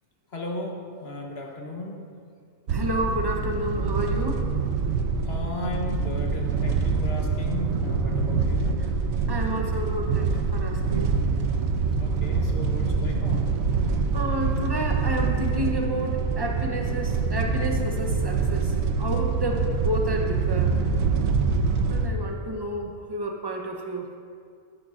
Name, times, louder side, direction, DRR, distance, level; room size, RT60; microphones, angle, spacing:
voice 1, 0.3-2.0 5.2-8.8 12.0-13.5, left 2 dB, 45° left, 0 dB, 1.3 m, -35 dB
voice 2, 2.7-4.4 8.8-8.9 9.3-11.2 13.9-20.8 21.9-24.1, right 1 dB, 25° right, 2 dB, 0.6 m, -30 dB
sound 1, 2.7-22.1, right 4 dB, 75° right, 1.1 m, -25 dB
13.0 x 11.5 x 2.5 m, 2.2 s
omnidirectional pair, 1.6 m